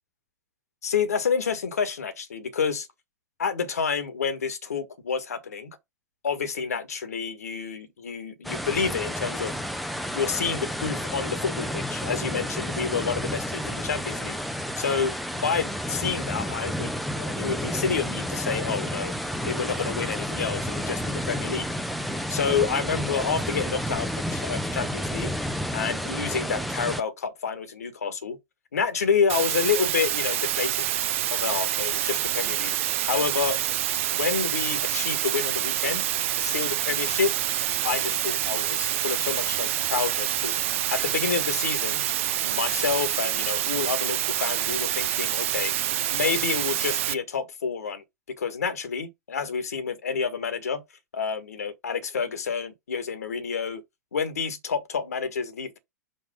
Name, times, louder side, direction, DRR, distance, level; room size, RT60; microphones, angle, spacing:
voice 1, 0.8-2.9 3.4-5.8 6.2-9.5 10.1-14.4 14.7-15.1 15.4-19.1 19.4-21.7 22.3-25.3 25.7-28.4 28.7-30.9 31.3-32.7 33.1-33.6 34.1-36.0 36.4-37.3 37.8-40.6 40.9-42.1 42.4-45.7 46.1-50.8 51.1-53.8 54.1-55.8, left 6 dB, 65° left, 1.6 m, -29 dB
sound 1, 8.4-27.0, equal, ahead, 0.7 m, -31 dB
sound 2, 29.3-47.1, right 13 dB, 50° right, 0.7 m, -27 dB
5.6 x 4.6 x 5.1 m
figure-of-eight pair, 100°, 9 cm